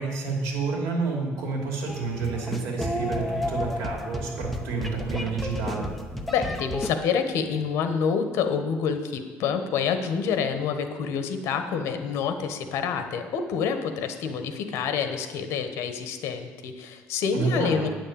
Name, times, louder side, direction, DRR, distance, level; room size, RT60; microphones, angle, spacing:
voice 1, 0.0-5.9 17.3-17.9, right 4 dB, 80° right, 1 dB, 2.7 m, -29 dB
sound 1, 1.9-6.9, left 1 dB, ahead, 0.7 m, -32 dB
voice 2, 6.3-17.9, left 6 dB, 65° left, 8 dB, 1.2 m, -27 dB
9.2 x 6.5 x 8.6 m, 1.4 s
cardioid pair, 170°, 5 cm